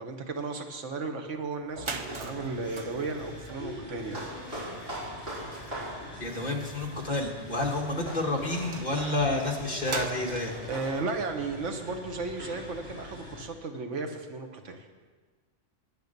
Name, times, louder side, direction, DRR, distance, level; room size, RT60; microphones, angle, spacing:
voice 1, 0.0-4.2 10.7-14.9, right 3 dB, 90° right, 5 dB, 1.4 m, -34 dB
sound 1, 1.4-1.5 1.6-12.4, right 4 dB, 30° right, 0.6 m, -43 dB
sound 2, 2.0-13.5, left 1 dB, 10° left, 3.6 m, -45 dB
sound 3, 4.0-10.9, right 1 dB, 55° right, 3.6 m, -42 dB
voice 2, 6.2-10.5, left 2 dB, 40° left, 1 dB, 1.5 m, -29 dB
9.5 x 9.4 x 6.6 m, 1.4 s
omnidirectional pair, 1.2 m